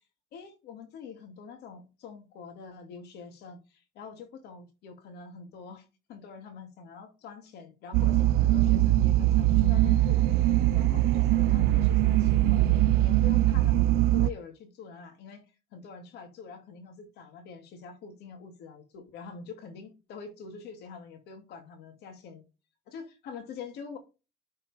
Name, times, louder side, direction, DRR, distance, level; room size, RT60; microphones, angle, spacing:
voice 1, 0.3-22.4 22.9-24.0, left 5 dB, 75° left, 2.4 m, -45 dB
sound 1, 7.9-14.3, right 15 dB, 90° right, 0.4 m, -22 dB
11.5 x 4.5 x 3.5 m
cardioid pair, 110°, 17 cm